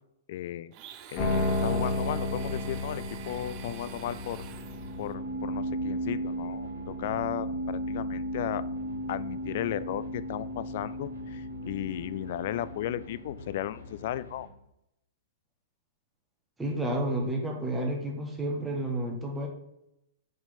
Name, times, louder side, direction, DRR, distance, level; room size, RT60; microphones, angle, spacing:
voice 1, 0.3-0.7 1.1-4.4 5.0-8.7 9.1-14.5, left 12 dB, 50° left, 16 dB, 0.3 m, -35 dB
Domestic sounds home sounds, 0.7-5.1, right 10 dB, 35° right, 0.5 m, -47 dB
sound 1, 1.2-13.5, left 1 dB, 30° left, 1.5 m, -34 dB
sound 2, 2.5-14.5, left 4 dB, 75° left, 1.4 m, -46 dB
voice 2, 16.6-19.5, right 1 dB, 10° right, 1 dB, 1.3 m, -30 dB
5.3 x 4.7 x 5.5 m, 0.85 s
figure-of-eight pair, 105°, 0 cm